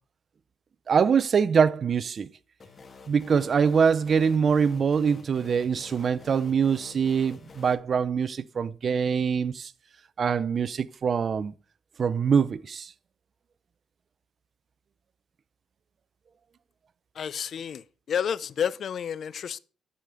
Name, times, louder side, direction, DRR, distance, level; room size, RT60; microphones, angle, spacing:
voice 1, 0.9-2.3 3.1-9.7 10.2-11.5 12.0-12.9, right 6 dB, 50° right, 0.5 m, -24 dB
sound 1, 2.6-7.7, left 4 dB, 35° left, 1.7 m, -49 dB
voice 2, 17.2-19.6, left 8 dB, 55° left, 0.5 m, -30 dB
11.5 x 4.9 x 5.6 m
cardioid pair, 90°, 0 cm